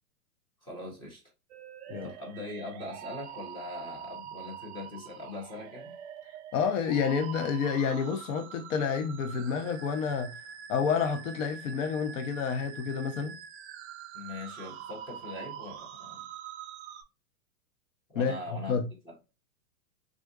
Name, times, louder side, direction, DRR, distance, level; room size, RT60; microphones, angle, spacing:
voice 1, 0.6-1.2 2.0-5.9 14.1-16.3 18.1-18.8 19.0-19.2, left 2 dB, 10° left, 0.6 m, -41 dB
sound 1, 1.5-17.0, right 9 dB, 50° right, 0.5 m, -45 dB
voice 2, 6.5-10.3 10.7-13.3 18.1-18.3 18.7-18.8, left 6 dB, 55° left, 0.7 m, -29 dB
3.6 x 2.5 x 2.2 m
hypercardioid pair, 145°, 45 cm